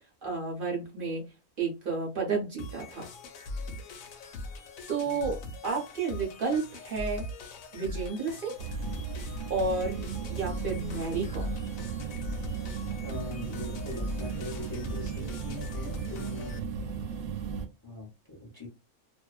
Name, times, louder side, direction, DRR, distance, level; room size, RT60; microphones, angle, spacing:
voice 1, 0.2-1.3 1.6-3.1 4.9-7.3 7.7-8.5 9.5-10.0 10.3-11.6, right 4 dB, 50° right, 0.7 m, -31 dB
sound 1, 2.6-16.6, left 2 dB, 70° left, 0.9 m, -41 dB
sound 2, 8.6-17.7, right 6 dB, 75° right, 1.0 m, -36 dB
voice 2, 13.0-16.6 17.8-18.7, left 2 dB, 35° left, 0.3 m, -42 dB
2.5 x 2.2 x 2.3 m
omnidirectional pair, 1.6 m